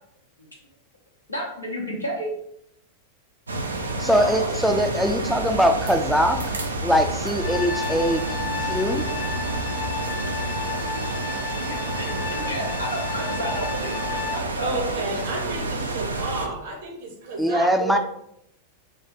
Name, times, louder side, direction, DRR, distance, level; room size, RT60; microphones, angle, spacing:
voice 1, 1.3-2.3 4.2-4.5 7.2-7.3 9.2-9.4 11.6-15.6, equal, 90° left, -3 dB, 1.0 m, -33 dB
sound 1, 3.5-16.5, right 2 dB, 75° right, 0.4 m, -29 dB
voice 2, 4.0-8.2 8.6-9.0 17.4-18.0, equal, ahead, 4 dB, 0.4 m, -22 dB
sound 2, 7.4-14.4, left 6 dB, 50° left, 0.9 m, -33 dB
voice 3, 14.6-18.0, right 3 dB, 55° right, 1 dB, 1.0 m, -31 dB
3.6 x 2.4 x 4.2 m, 0.74 s
figure-of-eight pair, 90°, 0 cm